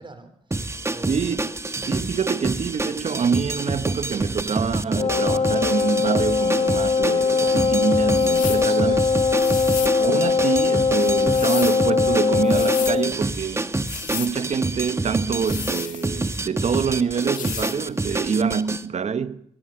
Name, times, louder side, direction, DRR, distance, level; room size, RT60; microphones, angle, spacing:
voice 1, 0.0-1.4 8.4-9.1 9.4-9.7, right 3 dB, 40° right, 4.8 m, -41 dB
sound 1, 0.5-18.8, right 2 dB, 20° right, 1.5 m, -28 dB
voice 2, 1.1-1.5 1.9-9.0 10.0-13.8 14.1-19.4, right 6 dB, 55° right, 1.1 m, -26 dB
Wind instrument woodwind instrument, 4.9-13.1, left 5 dB, 45° left, 0.8 m, -21 dB
sound 2, 8.1-8.7 9.4-10.0 11.0-11.8 12.4-13.0 13.8-14.4 15.3-16.4 17.2-17.8, left 10 dB, 85° left, 1.7 m, -34 dB
23.5 x 19.5 x 7.8 m
supercardioid pair, 50°, 13 cm